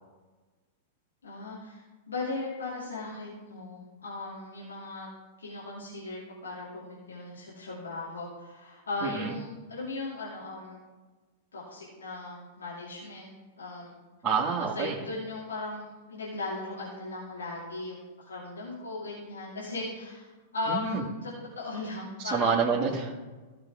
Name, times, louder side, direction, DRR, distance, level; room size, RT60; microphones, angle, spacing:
voice 1, 1.2-5.1 5.4-10.8 11.5-13.3 13.6-13.9 14.6-18.0 18.2-20.3 20.5-22.5, left 2 dB, 75° left, -6 dB, 2.8 m, -37 dB
voice 2, 9.0-9.3 14.2-15.0 20.7-21.0 22.2-23.1, right 5 dB, 20° right, -6 dB, 1.8 m, -27 dB
16.5 x 6.0 x 3.6 m, 1.3 s
figure-of-eight pair, 100°, 0 cm